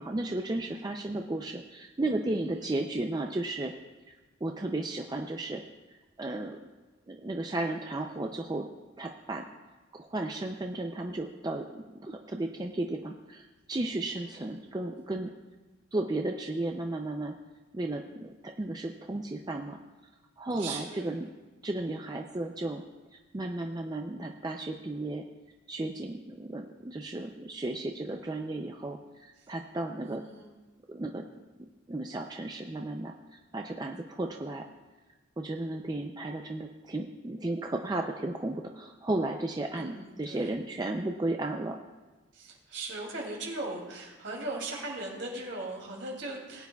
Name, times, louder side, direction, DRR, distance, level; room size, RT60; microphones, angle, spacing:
voice 1, 0.0-3.7 4.1-4.2 4.4-5.6 5.9-6.6 7.1-8.7 9.0-9.4 9.9-15.3 15.9-17.3 17.7-19.8 20.4-21.3 21.6-22.8 23.1-25.2 25.7-30.2 30.9-31.3 31.9-34.7 35.4-41.8, right 2 dB, 20° right, 3 dB, 0.4 m, -34 dB
voice 2, 2.4-2.7 14.2-14.6 20.6-21.2 30.0-30.5 39.7-40.5 42.3-46.7, right 2 dB, 65° right, -1 dB, 2.7 m, -39 dB
19.0 x 9.3 x 2.3 m, 1.3 s
head